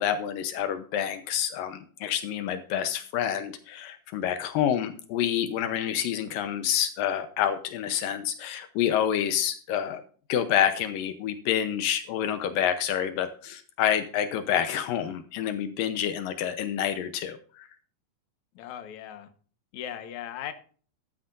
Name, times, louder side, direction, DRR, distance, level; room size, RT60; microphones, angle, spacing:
voice 1, 0.0-10.0 10.3-17.7, left 9 dB, 80° left, 9 dB, 2.5 m, -28 dB
voice 2, 18.6-19.3 19.7-20.5, left 10 dB, 65° left, 8 dB, 2.3 m, -38 dB
13.0 x 12.0 x 2.6 m, 0.42 s
omnidirectional pair, 4.1 m